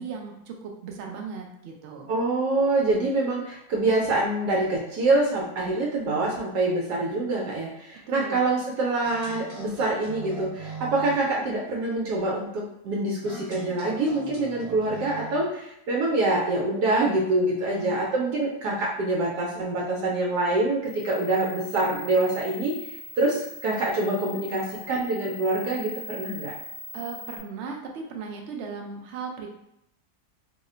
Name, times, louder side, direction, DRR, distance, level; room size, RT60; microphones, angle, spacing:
voice 1, 0.0-2.1 8.1-8.5 17.7-18.0 26.9-29.5, right 5 dB, 70° right, 2 dB, 0.7 m, -37 dB
voice 2, 2.1-22.7 23.2-26.5, right 2 dB, 85° right, -2 dB, 1.2 m, -25 dB
sound 1, 9.0-11.3 13.2-15.5, right 4 dB, 45° right, 1.4 m, -40 dB
sound 2, 20.8-27.4, left 2 dB, ahead, 0.6 m, -41 dB
2.9 x 2.1 x 3.6 m, 0.78 s
omnidirectional pair, 1.7 m